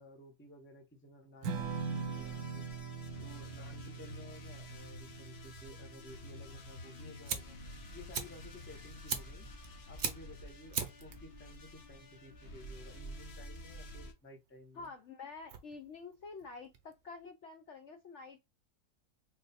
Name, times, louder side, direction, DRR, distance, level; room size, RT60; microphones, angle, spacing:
voice 1, 0.0-2.7 3.2-7.6 7.9-9.5 9.9-14.9, left 1 dB, 10° left, 0.6 m, -54 dB
Strum, 1.4-7.7, right 6 dB, 70° right, 1.3 m, -42 dB
sound 1, 1.5-14.1, left 1 dB, 45° left, 1.0 m, -50 dB
Fire, 6.9-17.3, right 6 dB, 55° right, 0.9 m, -43 dB
voice 2, 14.7-18.4, left 4 dB, 65° left, 0.7 m, -48 dB
3.8 x 2.4 x 4.1 m
omnidirectional pair, 1.7 m